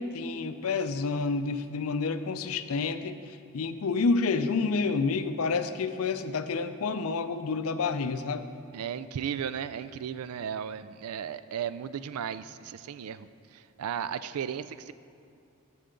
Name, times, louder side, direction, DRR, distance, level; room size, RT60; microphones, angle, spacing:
voice 1, 0.0-8.5, left 4 dB, 75° left, 11 dB, 0.5 m, -29 dB
voice 2, 8.7-14.9, right 8 dB, 85° right, 14 dB, 0.4 m, -35 dB
13.0 x 6.9 x 3.8 m, 2.6 s
head